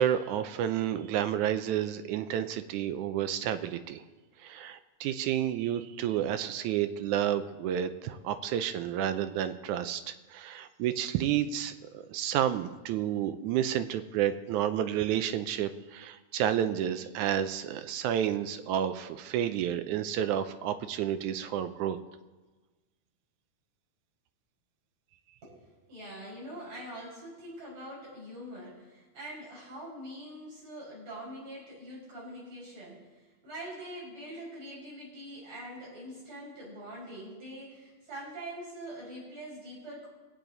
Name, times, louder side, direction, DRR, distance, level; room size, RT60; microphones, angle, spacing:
voice 1, 0.0-4.0 4.4-22.0, right 10 dB, 85° right, 10 dB, 2.1 m, -30 dB
voice 2, 25.4-40.1, right 1 dB, 60° right, -6 dB, 6.7 m, -44 dB
23.0 x 8.7 x 4.0 m, 1.2 s
omnidirectional pair, 3.5 m